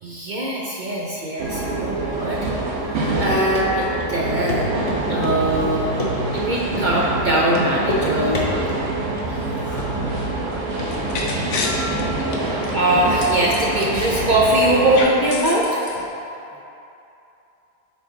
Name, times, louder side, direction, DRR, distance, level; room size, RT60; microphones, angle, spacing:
voice 1, 0.0-2.4 2.8-4.8 5.1-5.9 6.3-8.7 9.3-9.5 12.7-15.8, right 1 dB, 50° right, -4 dB, 0.6 m, -21 dB
sound 1, 1.4-15.0, right 2 dB, 80° right, 1.2 m, -25 dB
Run, 3.6-3.7 4.0-4.1 4.5-4.6 4.9-6.5 6.7-6.9 7.1-7.3 7.5-8.0 8.3-8.8 9.2-9.6 9.9-10.0 10.4-10.5 10.8-11.3 11.5-12.0 12.3-13.6 13.8-13.9 14.2-14.3, left 2 dB, 35° left, 0.7 m, -28 dB
voice 2, 9.4-12.1 16.5-16.6, equal, 5° left, -4 dB, 0.4 m, -43 dB
sound 2, 9.6-14.3 14.6-16.0, left 3 dB, 75° left, 1.0 m, -31 dB
7.1 x 4.3 x 3.8 m, 2.9 s
omnidirectional pair, 1.3 m